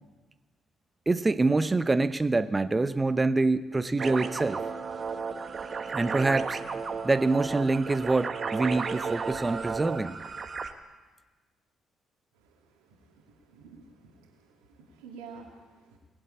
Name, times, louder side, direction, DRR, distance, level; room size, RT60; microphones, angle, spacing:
voice 1, 1.1-4.6 5.9-6.6 7.0-10.2, right 3 dB, 25° right, 14 dB, 0.8 m, -25 dB
sound 1, 4.0-10.7, right 5 dB, 45° right, 1.0 m, -33 dB
voice 2, 13.5-14.3 14.7-16.0, right 5 dB, 80° right, 0 dB, 2.4 m, -48 dB
20.0 x 7.9 x 8.6 m, 1.3 s
hypercardioid pair, 45°, 0 cm